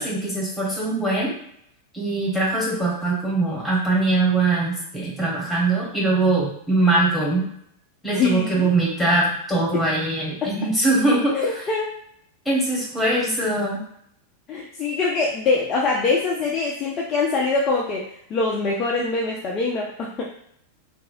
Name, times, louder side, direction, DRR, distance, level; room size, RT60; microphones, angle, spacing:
voice 1, 0.0-1.3 1.9-7.4 8.0-11.6 12.4-13.8, right 2 dB, 5° left, -4 dB, 1.3 m, -22 dB
voice 2, 8.1-8.8 10.4-10.5 11.3-11.9 14.5-18.0 18.3-20.3, left 3 dB, 30° left, -3 dB, 0.5 m, -23 dB
3.0 x 2.6 x 2.5 m, 0.71 s
figure-of-eight pair, 90°, 0 cm